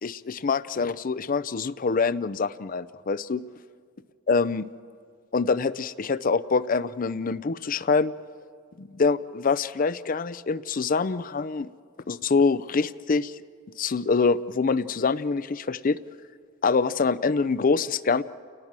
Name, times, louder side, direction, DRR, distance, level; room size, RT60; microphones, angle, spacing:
voice 1, 0.0-3.4 4.3-4.7 5.3-8.1 8.8-11.7 12.1-13.3 13.8-16.0 16.6-18.2, left 4 dB, 45° left, 16 dB, 0.5 m, -25 dB
29.5 x 19.0 x 7.5 m, 2.1 s
head